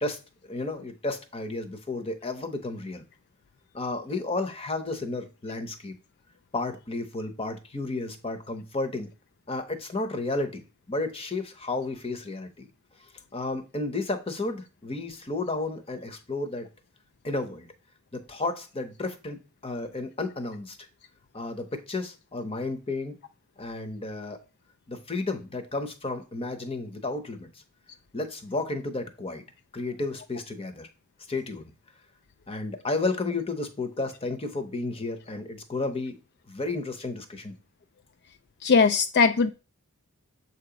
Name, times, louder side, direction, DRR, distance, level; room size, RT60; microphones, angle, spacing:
voice 1, 0.0-3.0 3.7-5.9 6.5-9.1 9.5-12.7 13.3-16.7 17.2-17.7 18.1-20.8 21.3-23.1 23.6-24.4 24.9-27.5 28.1-29.4 29.7-30.9 31.3-31.7 32.5-36.2 36.5-37.5, left 2 dB, 25° left, 0.8 m, -32 dB
voice 2, 38.6-39.5, left 5 dB, 45° left, 0.3 m, -20 dB
7.4 x 2.9 x 5.0 m
head